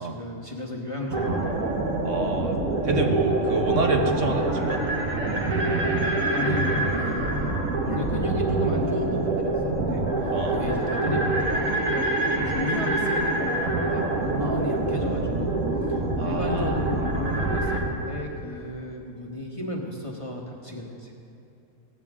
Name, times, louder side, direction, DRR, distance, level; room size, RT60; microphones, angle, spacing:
voice 1, 0.0-1.7 6.3-6.6 6.9-7.5 7.8-15.5 15.8-21.1, left 2 dB, 25° left, -1 dB, 1.3 m, -34 dB
sound 1, 1.1-17.8, right 2 dB, 80° right, 2.0 m, -25 dB
voice 2, 2.0-2.6 2.8-4.8 10.3-10.6 14.4-14.6 16.2-16.7, right 2 dB, 65° right, 1 dB, 1.6 m, -27 dB
17.5 x 14.5 x 3.7 m, 2.6 s
omnidirectional pair, 1.4 m